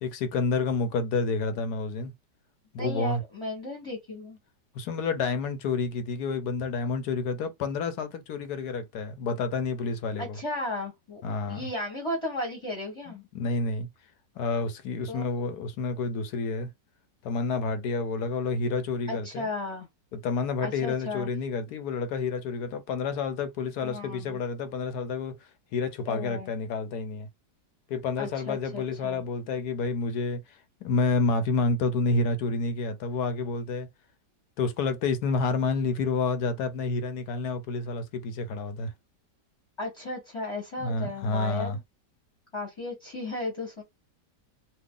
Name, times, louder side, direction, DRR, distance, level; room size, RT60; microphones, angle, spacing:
voice 1, 0.0-2.1 2.7-3.2 4.7-10.4 11.2-11.7 13.1-13.9 14.4-16.7 17.2-19.5 20.1-25.4 25.7-27.3 27.9-33.9 34.6-38.9 40.8-41.8, left 4 dB, 70° left, 1.1 m, -29 dB
voice 2, 2.7-4.4 10.2-11.2 11.5-13.2 15.1-15.3 19.1-19.9 20.6-21.3 23.8-24.4 26.1-26.5 28.2-29.2 39.8-41.8 42.5-43.8, left 2 dB, 20° left, 0.9 m, -35 dB
2.9 x 2.3 x 3.7 m
omnidirectional pair, 1.9 m